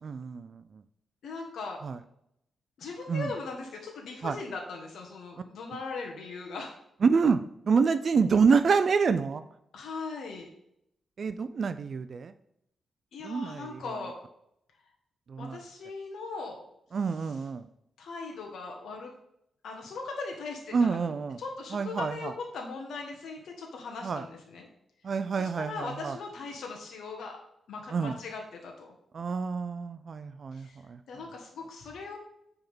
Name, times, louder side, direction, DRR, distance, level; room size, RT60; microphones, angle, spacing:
voice 1, 0.0-0.8 1.8-2.0 3.1-3.3 4.2-4.4 5.7-5.8 7.0-9.4 11.2-12.3 13.2-13.8 15.3-15.6 16.9-17.7 20.7-21.4 21.7-22.3 24.0-24.3 25.0-26.2 27.9-28.2 29.1-31.2, right 5 dB, 40° right, 11 dB, 0.3 m, -27 dB
voice 2, 1.2-1.8 2.8-6.7 9.7-10.5 13.1-14.2 15.4-16.6 18.0-19.1 19.6-21.0 21.4-24.7 25.4-27.4 27.7-28.9 30.5-30.8 31.1-32.2, left 4 dB, 70° left, 1 dB, 1.1 m, -39 dB
9.0 x 3.5 x 5.4 m, 0.78 s
wide cardioid pair, 170°, 0 cm